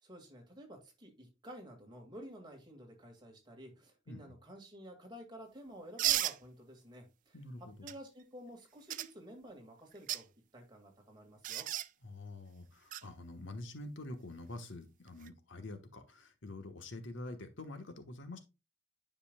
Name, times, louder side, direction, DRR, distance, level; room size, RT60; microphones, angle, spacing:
voice 1, 0.0-7.4 7.8-10.3 10.5-11.7, equal, 25° right, 1.9 m, -52 dB
sound 1, 6.0-6.4 7.9-8.0 8.9-9.1 9.9-10.2 11.4-11.9 12.9-13.0 15.1-15.3, right 13 dB, 45° right, 0.3 m, -33 dB
voice 2, 7.3-7.9 12.0-18.4, left 2 dB, 85° left, 1.2 m, -46 dB
9.9 x 5.4 x 2.2 m
head